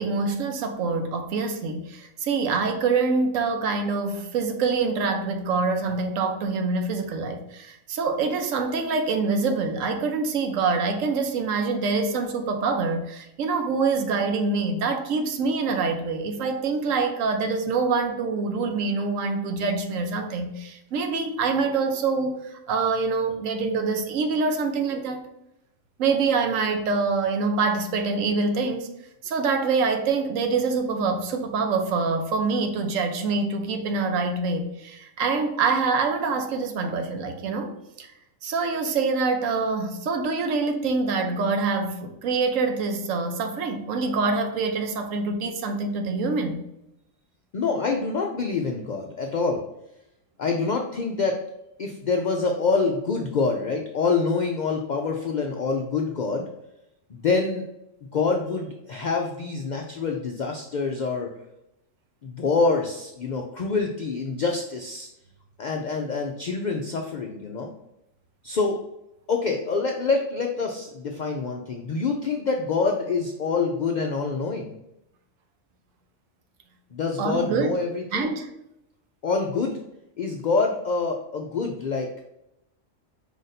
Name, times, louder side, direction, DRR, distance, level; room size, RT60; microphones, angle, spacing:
voice 1, 0.0-25.2 26.0-28.9 29.2-38.1 38.4-46.6 77.2-77.7 78.1-78.5, right 4 dB, 90° right, 5 dB, 1.1 m, -25 dB
voice 2, 47.5-49.6 50.4-51.4 51.8-56.5 57.1-57.6 58.1-61.3 62.2-65.1 65.6-67.7 68.4-68.8 69.3-74.8 76.9-78.3 79.2-79.8 80.2-82.2, left 4 dB, 75° left, 2 dB, 0.4 m, -26 dB
5.0 x 2.6 x 4.0 m, 0.84 s
omnidirectional pair, 1.3 m